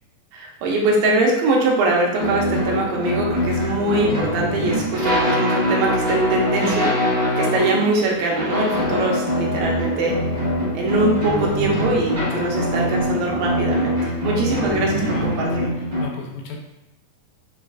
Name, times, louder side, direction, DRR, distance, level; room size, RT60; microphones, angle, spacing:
voice 1, 0.3-7.0 7.4-10.2 10.7-15.7, right 2 dB, 85° right, -1 dB, 2.4 m, -22 dB
sound 1, 2.2-16.0, left 1 dB, 45° right, 1.0 m, -23 dB
voice 2, 15.0-15.4 15.7-16.6, left 5 dB, 80° left, 1 dB, 2.2 m, -35 dB
6.0 x 2.5 x 2.3 m, 0.99 s
omnidirectional pair, 3.9 m